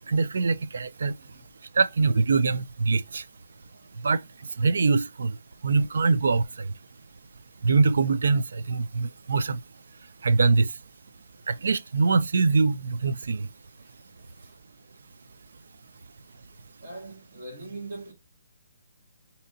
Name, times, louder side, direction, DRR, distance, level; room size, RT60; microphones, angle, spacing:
voice 1, 0.1-1.1 1.8-3.2 4.0-4.2 4.6-5.4 5.6-6.7 7.6-9.6 10.2-10.7 11.5-13.5, right 4 dB, 75° right, 0.3 m, -23 dB
voice 2, 13.8-14.6 16.8-18.1, right 2 dB, 50° right, 1.6 m, -42 dB
6.5 x 2.7 x 2.6 m
hypercardioid pair, 165°, 0 cm